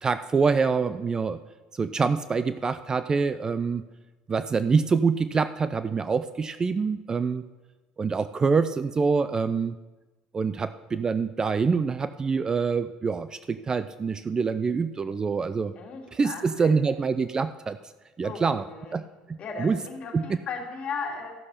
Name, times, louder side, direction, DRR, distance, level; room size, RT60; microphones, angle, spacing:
voice 1, 0.0-1.4 1.7-3.8 4.3-7.4 8.0-9.8 10.3-15.7 16.1-17.8 18.2-18.6 18.9-19.8 20.1-20.3, right 5 dB, 25° right, 13 dB, 0.4 m, -25 dB
voice 2, 15.8-16.7 18.2-19.0 19.4-21.3, left 5 dB, 45° left, 0 dB, 2.5 m, -36 dB
13.5 x 6.6 x 5.7 m, 1.2 s
supercardioid pair, 110°, 3 cm